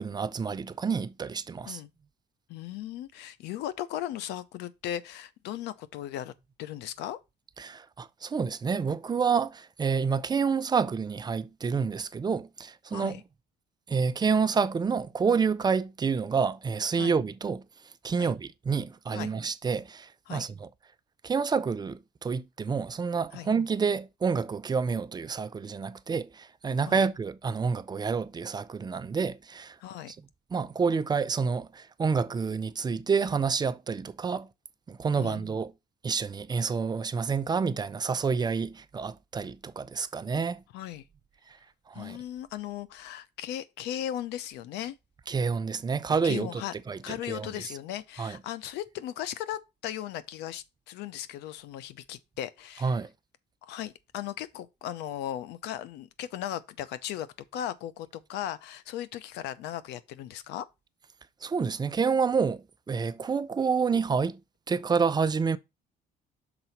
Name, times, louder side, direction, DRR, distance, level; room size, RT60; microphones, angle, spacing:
voice 1, 0.0-1.8 7.6-13.2 13.9-17.6 18.0-20.7 21.2-29.8 30.1-30.2 30.5-34.5 34.9-35.7 36.0-40.6 41.9-42.2 45.3-46.6 46.9-47.5 48.2-48.4 52.8-53.1 61.4-64.4 64.7-65.6, right 5 dB, 25° right, 0.5 m, -28 dB
voice 2, 2.5-6.3 6.6-7.2 12.9-13.2 17.0-17.1 18.2-18.3 19.1-19.3 20.3-20.5 23.3-23.5 26.9-27.1 29.8-30.1 35.2-35.4 40.7-41.0 41.9-45.0 46.2-46.7 47.0-53.0 53.6-57.3 57.5-60.7, left 11 dB, 90° left, 0.7 m, -37 dB
6.1 x 3.9 x 5.8 m
cardioid pair, 110°, 17 cm